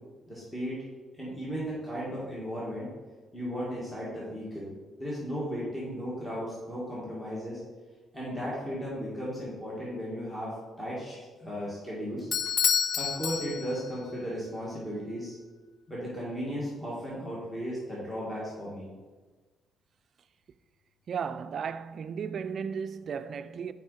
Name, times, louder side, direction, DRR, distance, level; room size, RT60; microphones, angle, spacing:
voice 1, 0.3-0.8 1.2-2.9 3.3-4.7 5.0-7.6 8.1-12.3 12.9-15.4 15.9-18.9, equal, 15° left, 2.0 m, -35 dB
Bell / Doorbell, 12.3-14.0, left 7 dB, 60° left, 0.3 m, -28 dB
voice 2, 21.1-23.7, right 6 dB, 55° right, 0.3 m, -35 dB
6.3 x 5.1 x 4.2 m
cardioid pair, 90°, 0 cm